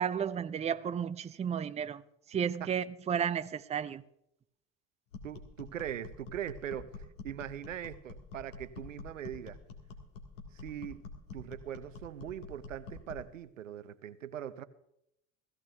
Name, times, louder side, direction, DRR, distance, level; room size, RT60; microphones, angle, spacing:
voice 1, 0.0-2.0 2.3-4.0, right 8 dB, 20° right, 0.5 m, -33 dB
sound 1, 5.1-13.3, left 4 dB, 75° left, 2.0 m, -48 dB
voice 2, 5.2-9.6 10.5-11.0 11.3-14.6, right 10 dB, 90° right, 0.7 m, -41 dB
16.5 x 14.5 x 3.4 m
hypercardioid pair, 70°, 37 cm